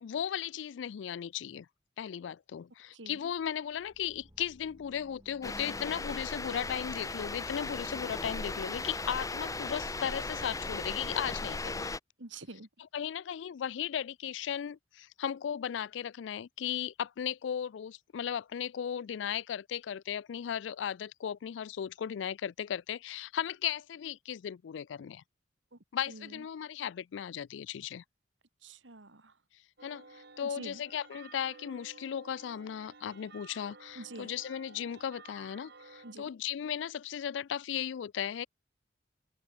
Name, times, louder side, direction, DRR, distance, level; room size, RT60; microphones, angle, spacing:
voice 1, 0.0-1.7 2.0-11.9 12.9-25.2 25.9-28.0 29.8-38.5, left 9 dB, 75° left, 0.3 m, -36 dB
voice 2, 2.9-3.2 12.2-12.7 25.7-26.5 28.6-29.4 30.4-30.8 33.9-34.3 36.0-36.3, right 2 dB, 85° right, 2.5 m, -47 dB
sound 1, 3.6-9.8, right 1 dB, 20° right, 3.5 m, -59 dB
sound 2, 5.4-12.0, left 3 dB, 20° left, 0.9 m, -37 dB
sound 3, 29.8-36.1, right 4 dB, 65° right, 4.3 m, -54 dB
open air
head